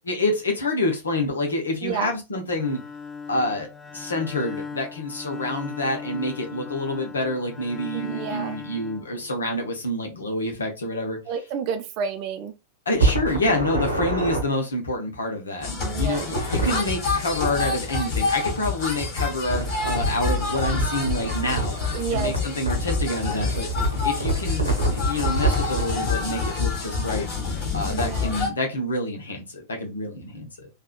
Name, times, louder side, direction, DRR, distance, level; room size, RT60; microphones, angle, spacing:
voice 1, 0.1-2.8 3.3-3.7 3.9-11.2 12.9-15.7 15.9-21.8 22.1-23.7 24.0-27.2 27.7-30.7, left 1 dB, 70° left, 0.9 m, -27 dB
voice 2, 1.8-2.1 7.9-8.6 11.3-12.5 15.8-16.3 21.9-22.3 27.9-28.3, right 6 dB, 45° right, 0.4 m, -30 dB
Bowed string instrument, 2.5-9.7, left 5 dB, 15° left, 0.4 m, -38 dB
sound 1, 12.9-14.4 16.2-16.8 19.5-25.9, right 2 dB, 80° right, 0.9 m, -26 dB
sound 2, 15.6-28.5, left 4 dB, 45° left, 1.5 m, -27 dB
3.4 x 2.4 x 2.2 m
figure-of-eight pair, 90°, 0 cm